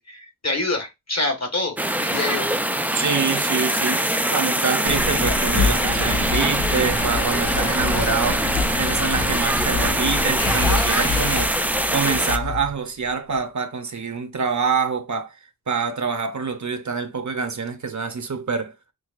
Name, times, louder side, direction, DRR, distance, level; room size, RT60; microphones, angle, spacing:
voice 1, 0.0-2.5, left 2 dB, 50° left, 1.3 m, -26 dB
sound 1, 1.8-12.4, right 1 dB, 5° right, 0.4 m, -23 dB
voice 2, 2.9-4.0 4.3-8.5 8.8-11.5 11.9-15.4 15.7-18.7, right 5 dB, 55° right, 0.7 m, -26 dB
Engine, 4.8-12.7 13.3-13.4, left 2 dB, 85° left, 1.8 m, -26 dB
6.1 x 2.4 x 2.4 m
wide cardioid pair, 55°, 35 cm